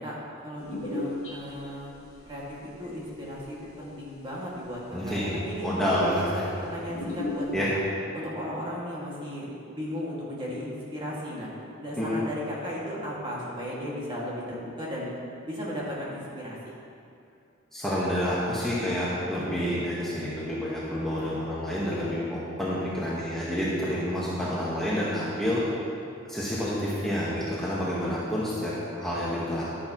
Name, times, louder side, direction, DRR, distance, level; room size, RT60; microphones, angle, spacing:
voice 1, 0.0-1.9 2.3-5.7 6.0-7.8 8.1-11.5 11.8-15.1 15.4-16.7, equal, 25° right, -6 dB, 2.1 m, -36 dB
sound 1, 0.6-2.3 2.6-3.9 4.6-4.7 5.0-5.1 5.3-5.4 5.8-6.4 6.9-7.6, left 2 dB, 70° left, 2.2 m, -35 dB
voice 2, 4.9-6.4 7.5-7.7 12.0-12.2 17.7-25.6 26.3-29.7, equal, ahead, -9 dB, 1.3 m, -29 dB
11.0 x 10.5 x 3.0 m, 2.5 s
head